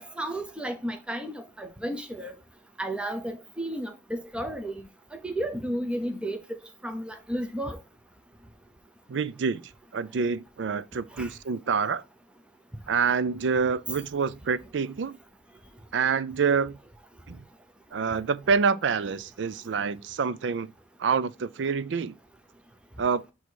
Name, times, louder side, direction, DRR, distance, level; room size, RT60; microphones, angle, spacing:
voice 1, 0.0-2.3 2.8-4.7 5.2-6.6 6.8-7.8 11.2-11.3, right 1 dB, 5° right, 0.7 m, -33 dB
voice 2, 9.1-9.6 9.9-12.0 12.9-15.2 15.9-16.8 17.3-17.4 17.9-20.7 21.0-22.1 23.0-23.2, right 5 dB, 70° right, 0.4 m, -27 dB
8.1 x 2.8 x 4.5 m
head